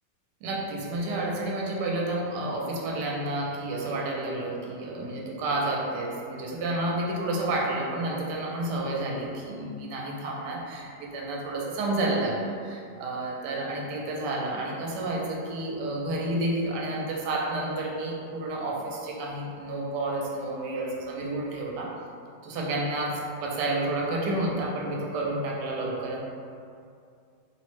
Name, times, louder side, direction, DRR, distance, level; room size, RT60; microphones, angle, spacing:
voice 1, 0.4-21.9 22.4-26.2, right 2 dB, 80° right, -2 dB, 1.1 m, -30 dB
3.0 x 2.0 x 3.0 m, 2.4 s
omnidirectional pair, 1.8 m